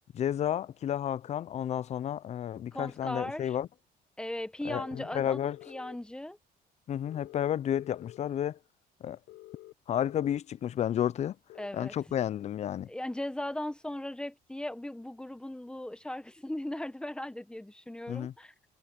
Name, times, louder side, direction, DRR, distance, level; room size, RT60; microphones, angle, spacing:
voice 1, 0.1-3.7 4.6-5.6 6.9-8.6 9.0-9.2 9.9-11.4 11.7-12.9 18.1-18.3, left 10 dB, 40° left, 0.4 m, -31 dB
voice 2, 2.7-3.6 4.2-6.4 11.6-11.9 12.9-18.5, left 1 dB, 5° left, 1.2 m, -38 dB
sound 1, 4.8-6.0 7.1-8.2 9.3-10.4 11.5-11.7, left 17 dB, 75° left, 1.1 m, -50 dB
cardioid pair, 110°, 17 cm